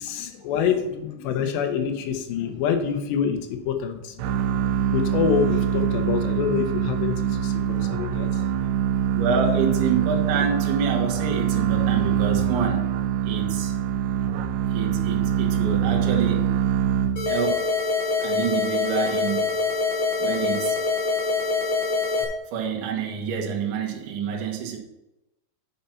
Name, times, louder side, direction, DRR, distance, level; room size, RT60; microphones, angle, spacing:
voice 1, 0.0-4.1 4.9-8.4, left 7 dB, 80° left, 7 dB, 3.0 m, -26 dB
sound 1, 4.2-17.6, right 9 dB, 85° right, 2.9 m, -24 dB
voice 2, 9.1-12.9 13.2-13.7 14.7-16.5 17.3-17.7 18.2-19.5 20.2-20.8 22.5-24.8, right 6 dB, 60° right, 0 dB, 2.4 m, -27 dB
sound 2, 17.2-22.2, left 4 dB, 45° left, 1.9 m, -24 dB
8.7 x 5.6 x 5.7 m, 0.93 s
omnidirectional pair, 5.1 m